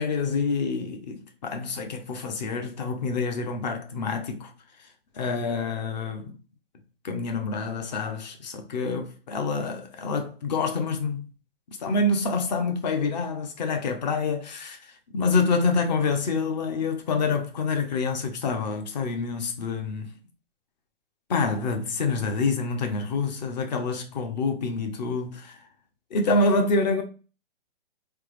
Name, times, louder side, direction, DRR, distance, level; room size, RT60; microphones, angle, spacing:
voice 1, 0.0-4.5 5.1-6.4 7.0-11.3 11.7-20.1 21.3-25.6 26.1-27.0, left 3 dB, 45° left, 0.7 m, -27 dB
3.3 x 2.0 x 3.2 m
hypercardioid pair, 150°, 30 cm